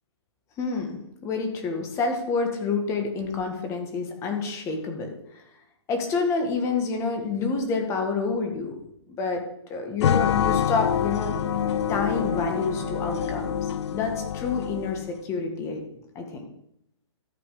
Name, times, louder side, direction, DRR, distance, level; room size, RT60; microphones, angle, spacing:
voice 1, 0.6-5.4 5.9-8.8 9.1-9.4 9.7-11.4 11.9-15.8 16.1-16.5, left 4 dB, 20° left, 3 dB, 1.9 m, -28 dB
sound 1, 10.0-15.1, left 9 dB, 65° left, 0.4 m, -26 dB
Bowed string instrument, 10.6-15.2, right 6 dB, 40° right, 2.3 m, -42 dB
12.5 x 8.2 x 5.1 m, 0.77 s
hypercardioid pair, 155°, 15 cm